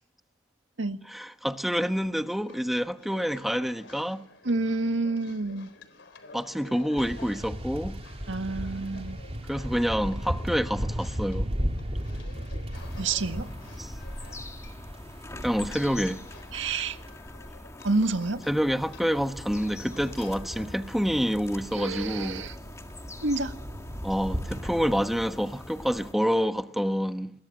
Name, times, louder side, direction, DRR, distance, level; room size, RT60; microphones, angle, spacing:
voice 1, 1.1-4.2 6.3-8.0 9.5-11.5 13.8-13.9 15.4-16.2 18.5-22.5 24.0-27.3, equal, ahead, 1.1 m, -27 dB
sound 1, 2.3-22.0, left 3 dB, 65° left, 4.0 m, -52 dB
voice 2, 4.4-5.7 8.3-9.2 13.0-13.5 16.5-17.0 17.8-18.4 21.7-22.6 23.2-23.6, right 3 dB, 75° right, 1.9 m, -28 dB
sound 2, 7.0-17.1 18.8-25.0, equal, 35° right, 3.4 m, -36 dB
sound 3, 12.7-26.1, left 1 dB, 15° left, 2.0 m, -44 dB
29.0 x 22.5 x 7.7 m
head